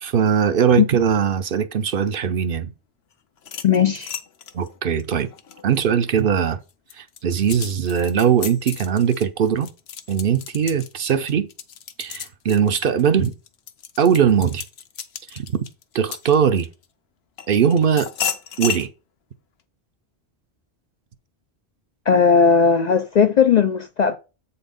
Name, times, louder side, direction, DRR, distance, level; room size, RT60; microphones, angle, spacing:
voice 1, 0.0-2.7 4.5-5.3 5.6-6.6 7.0-9.7 10.1-11.5 12.0-13.3 14.0-14.6 15.3-15.6 15.9-16.7 17.5-18.1 18.6-18.9, right 7 dB, 60° right, 0.8 m, -20 dB
sound 1, 3.4-6.2 6.7-16.8 17.4-18.9, left 9 dB, 70° left, 1.0 m, -34 dB
voice 2, 3.6-4.1 22.1-24.2, left 6 dB, 55° left, 0.5 m, -17 dB
8.0 x 4.2 x 5.1 m
omnidirectional pair, 1.1 m